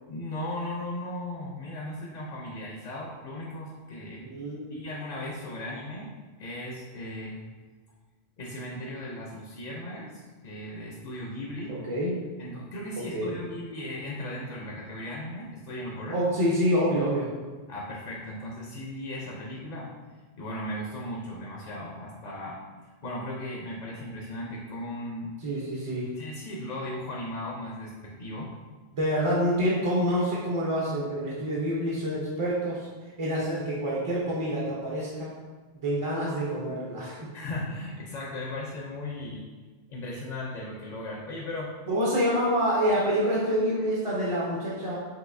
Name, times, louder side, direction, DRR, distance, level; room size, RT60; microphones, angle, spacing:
voice 1, 0.1-4.2 4.7-6.1 6.4-7.4 8.4-11.8 12.4-16.2 17.7-19.9 20.3-22.6 23.0-25.4 26.2-28.6 37.3-39.4 39.9-41.7, left 1 dB, 50° left, -2 dB, 0.6 m, -37 dB
voice 2, 4.2-4.7 11.7-12.2 13.1-13.4 16.1-17.3 25.4-26.1 28.9-32.9 33.2-35.3 35.8-37.3 41.9-45.0, equal, 35° right, -5 dB, 0.6 m, -27 dB
5.6 x 2.7 x 2.6 m, 1.4 s
omnidirectional pair, 1.1 m